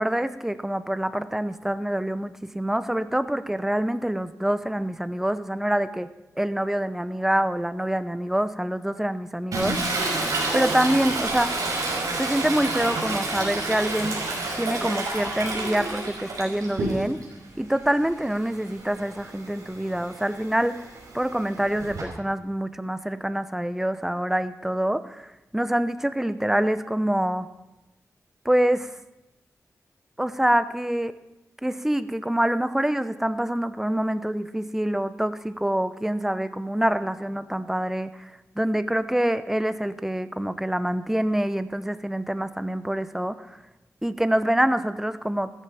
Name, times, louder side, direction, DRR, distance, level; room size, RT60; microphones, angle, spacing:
voice 1, 0.0-6.1 6.4-9.8 10.5-11.6 12.2-14.2 14.6-17.2 17.6-20.8 21.1-25.3 25.5-27.5 28.4-28.9 30.2-31.1 31.6-38.3 38.6-43.6 44.0-45.5, right 1 dB, 5° right, 12 dB, 0.7 m, -26 dB
Toilet flush, 9.5-17.3 17.7-22.0, right 2 dB, 80° right, 5.7 m, -30 dB
15.5 x 14.0 x 5.7 m, 0.98 s
wide cardioid pair, 95°, 6 cm